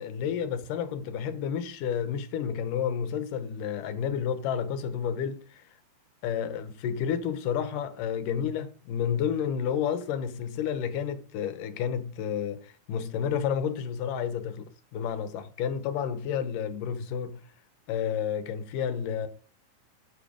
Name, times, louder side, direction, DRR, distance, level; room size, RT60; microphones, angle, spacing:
voice 1, 0.0-5.6 6.2-17.4 17.9-19.3, left 8 dB, 80° left, 2.5 m, -30 dB
8.3 x 7.7 x 5.1 m
omnidirectional pair, 3.8 m